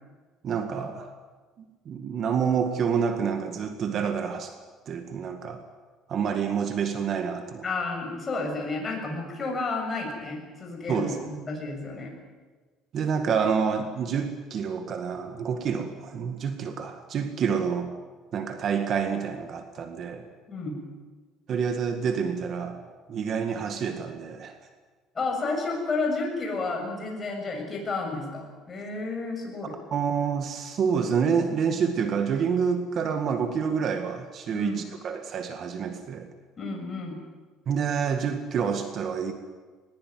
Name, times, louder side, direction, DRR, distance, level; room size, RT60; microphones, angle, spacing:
voice 1, 0.4-1.1 1.9-4.5 4.9-5.6 6.1-7.6 10.9-11.2 12.9-17.9 18.3-20.2 21.5-22.8 23.1-24.5 29.9-36.3 37.7-39.3, right 6 dB, 45° right, 7 dB, 1.9 m, -28 dB
voice 2, 7.6-12.1 20.5-20.8 25.2-29.7 34.5-34.8 36.6-37.2, left 3 dB, 25° left, 1 dB, 6.9 m, -31 dB
20.5 x 20.5 x 9.5 m, 1.4 s
cardioid pair, 145°, 0 cm